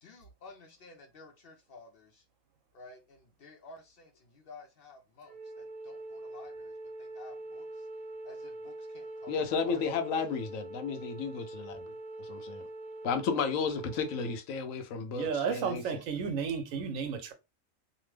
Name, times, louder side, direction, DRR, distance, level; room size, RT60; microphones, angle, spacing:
voice 1, 0.0-2.2 2.7-6.7 7.0-7.7 8.2-9.8 15.5-16.3, left 3 dB, 60° left, 0.7 m, -53 dB
Wind instrument woodwind instrument, 5.2-14.4, right 2 dB, 60° right, 0.6 m, -44 dB
voice 2, 9.3-11.8 12.2-12.6 13.0-15.8, left 5 dB, 85° left, 1.0 m, -33 dB
voice 3, 15.1-17.3, right 6 dB, 85° right, 1.1 m, -32 dB
2.8 x 2.0 x 3.2 m
omnidirectional pair, 1.3 m